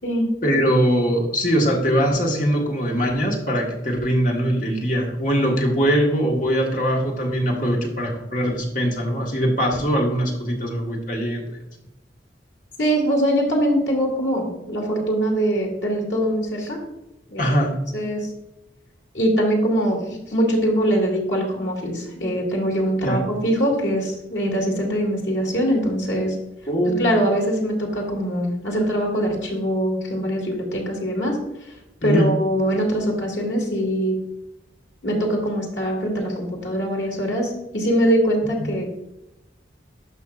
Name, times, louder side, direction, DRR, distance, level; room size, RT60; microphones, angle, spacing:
voice 1, 0.4-11.4 17.4-17.7 23.0-23.2 26.7-27.2 32.0-32.3 38.6-38.7, equal, 45° left, 0 dB, 1.5 m, -21 dB
voice 2, 12.8-16.8 17.3-17.5 17.9-18.3 19.1-26.4 27.0-31.7 32.0-34.1 35.0-38.9, equal, 85° left, -1 dB, 2.5 m, -22 dB
11.5 x 5.7 x 2.4 m, 0.94 s
head